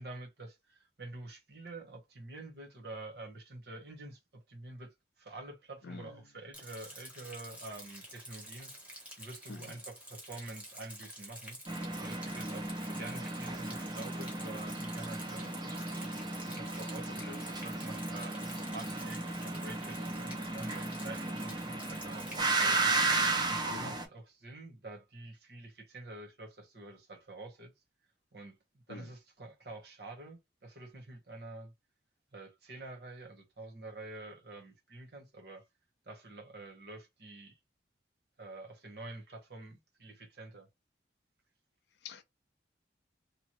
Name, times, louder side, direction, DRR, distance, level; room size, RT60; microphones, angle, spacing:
voice 1, 0.0-11.6 12.0-16.1 16.5-18.4 18.7-27.7 28.3-31.7 32.3-35.6 36.0-37.6 38.4-40.7, right 2 dB, 60° right, 1.0 m, -48 dB
voice 2, 5.8-6.2 9.5-9.7 17.2-17.4 23.7-24.0 28.9-29.1 42.0-42.2, left 5 dB, 65° left, 0.4 m, -47 dB
Rain, 6.5-22.4, equal, 5° right, 0.9 m, -49 dB
sound 1, 11.7-24.1, right 3 dB, 25° right, 0.5 m, -34 dB
2.9 x 2.1 x 2.9 m
head